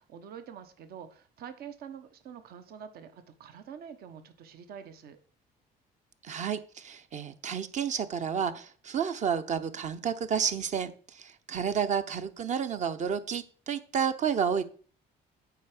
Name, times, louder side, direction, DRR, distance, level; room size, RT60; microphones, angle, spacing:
voice 1, 0.0-5.2, right 8 dB, 65° right, 10 dB, 1.1 m, -46 dB
voice 2, 6.2-14.6, right 7 dB, 45° right, 11 dB, 0.9 m, -31 dB
8.4 x 4.8 x 6.0 m, 0.42 s
cardioid pair, 110°, 17 cm